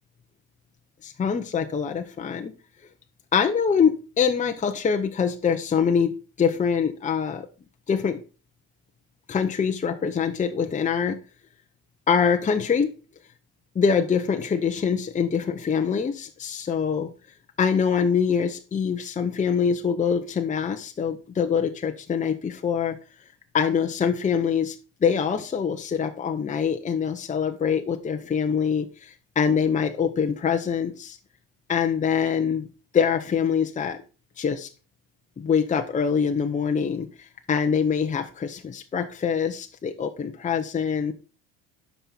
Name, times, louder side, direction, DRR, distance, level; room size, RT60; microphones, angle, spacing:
voice 1, 1.0-2.5 3.3-7.5 7.9-8.2 9.3-11.2 12.1-12.9 13.7-17.1 17.6-23.0 23.5-24.7 25.0-31.2 31.7-32.7 32.9-34.0 34.4-34.7 35.4-41.1, left 6 dB, 25° left, 5 dB, 0.9 m, -24 dB
9.9 x 5.6 x 4.5 m, 0.34 s
supercardioid pair, 95°, 32 cm